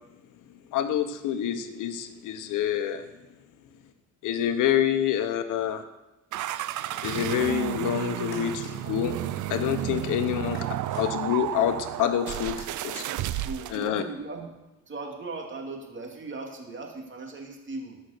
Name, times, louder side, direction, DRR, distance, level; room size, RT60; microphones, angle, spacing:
voice 1, 0.7-3.0 4.2-5.8 7.0-9.2 9.5-10.6 11.0-13.0 13.7-14.0, left 10 dB, 90° left, 9 dB, 0.9 m, -27 dB
sound 1, 6.3-13.9, right 13 dB, 80° right, 0.6 m, -32 dB
sound 2, 6.9-7.5 8.3-8.7 10.5-11.1 12.4-12.8, left 2 dB, 45° left, 4.4 m, -46 dB
voice 2, 13.4-14.5 14.9-18.0, right 3 dB, 40° right, 1 dB, 2.5 m, -38 dB
14.0 x 5.8 x 6.6 m, 1.0 s
cardioid pair, 90°, 30 cm